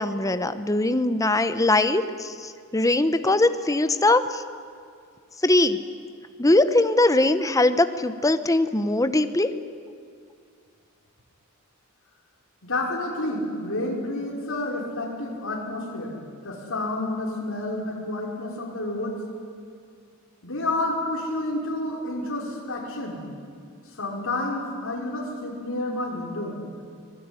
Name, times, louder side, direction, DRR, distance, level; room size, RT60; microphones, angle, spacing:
voice 1, 0.0-4.4 5.4-5.8 6.4-9.5, left 2 dB, 15° left, 10 dB, 0.9 m, -21 dB
voice 2, 12.6-16.2 16.4-19.2 20.4-23.2 24.0-26.6, left 2 dB, 65° left, -1 dB, 5.4 m, -29 dB
25.0 x 19.0 x 9.9 m, 2.3 s
head